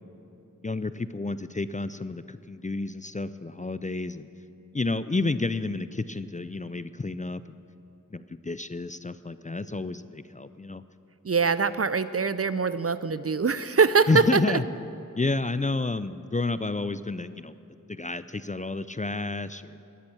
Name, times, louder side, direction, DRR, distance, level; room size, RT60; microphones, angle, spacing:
voice 1, 0.6-4.3 4.7-7.6 8.1-10.8 14.1-14.6 15.2-17.5 17.9-19.8, left 3 dB, 25° left, 13 dB, 0.4 m, -30 dB
voice 2, 11.2-14.6, right 5 dB, 50° right, 13 dB, 0.5 m, -23 dB
13.0 x 10.5 x 7.1 m, 3.0 s
wide cardioid pair, 45°, 31 cm